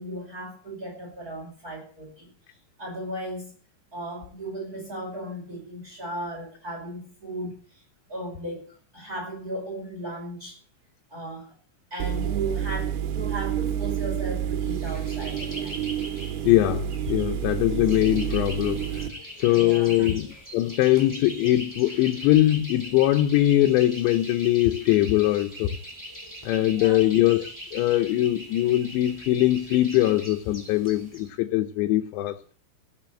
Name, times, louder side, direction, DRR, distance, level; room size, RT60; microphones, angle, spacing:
voice 1, 0.0-2.3 2.8-3.5 3.9-7.6 8.1-10.6 11.1-11.5 11.9-15.9 17.5-17.6 19.5-19.9 26.6-27.0, right 1 dB, 20° right, 5.6 m, -36 dB
sound 1, 12.0-19.1, right 10 dB, 80° right, 3.4 m, -29 dB
sound 2, 14.6-31.3, equal, 5° left, 2.9 m, -41 dB
voice 2, 16.5-18.9 19.4-20.2 20.5-25.7 26.5-32.4, left 14 dB, 75° left, 2.9 m, -22 dB
15.5 x 7.0 x 8.9 m
omnidirectional pair, 5.5 m